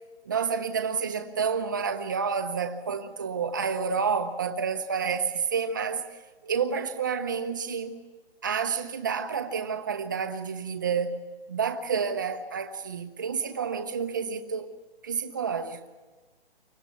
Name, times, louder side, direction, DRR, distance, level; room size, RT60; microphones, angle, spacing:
voice 1, 0.3-6.0 6.4-8.0 8.4-11.2 11.5-14.7 15.0-15.9, right 6 dB, 20° right, 0.8 m, -29 dB
29.0 x 24.5 x 5.8 m
hypercardioid pair, 180°, 32 cm